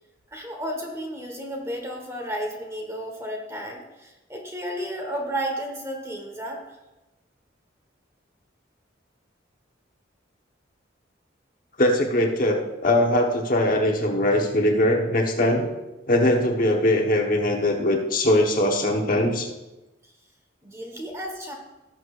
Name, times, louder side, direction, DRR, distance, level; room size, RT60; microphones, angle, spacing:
voice 1, 0.3-6.6 20.6-21.5, equal, 15° right, 2 dB, 1.4 m, -32 dB
voice 2, 11.8-15.7 16.1-19.5, left 1 dB, 50° left, 1 dB, 1.2 m, -21 dB
18.0 x 6.5 x 2.5 m, 1.0 s
head